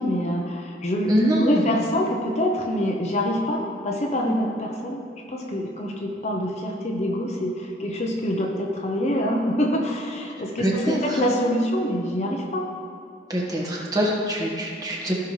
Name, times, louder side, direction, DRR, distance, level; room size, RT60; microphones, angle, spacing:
voice 1, 0.0-1.1 1.4-5.0 5.3-12.6, equal, 35° left, 0 dB, 0.7 m, -25 dB
voice 2, 1.1-1.6 10.6-11.2 13.3-15.1, equal, 20° right, -4 dB, 1.4 m, -24 dB
15.5 x 5.8 x 3.2 m, 2.5 s
head